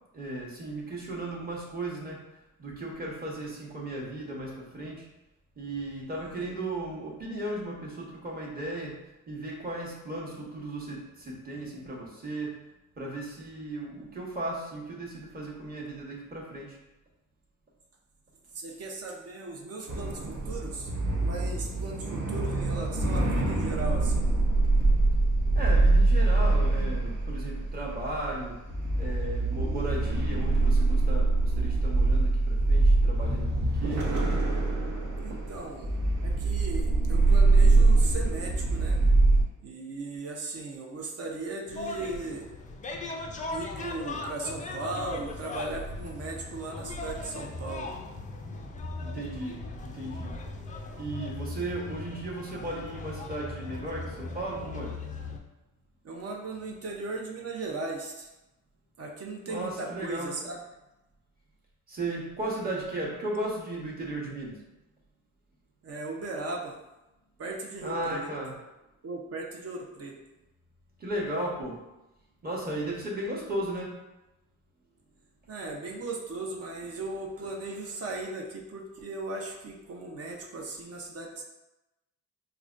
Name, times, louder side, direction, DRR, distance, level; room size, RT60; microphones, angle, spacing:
voice 1, 0.1-2.2 2.6-5.0 5.6-8.9 9.3-11.0 11.3-12.5 13.0-16.7 25.5-28.6 29.0-34.0 49.0-50.3 51.0-54.9 59.5-60.3 61.9-64.6 67.8-68.5 71.0-71.8 72.4-73.9, right 1 dB, 30° right, -3 dB, 1.0 m, -35 dB
voice 2, 18.5-20.9 21.2-24.3 35.2-35.9 36.2-39.0 39.6-42.5 43.5-47.9 56.0-58.3 59.0-60.7 65.8-66.8 67.4-68.3 69.0-70.2 75.5-81.4, right 3 dB, 45° right, 0 dB, 0.6 m, -37 dB
sound 1, 19.9-39.4, right 2 dB, 75° right, 0.9 m, -24 dB
sound 2, 41.7-55.4, left 2 dB, 25° left, 0.3 m, -38 dB
4.8 x 2.2 x 2.4 m, 0.99 s
cardioid pair, 110°, 33 cm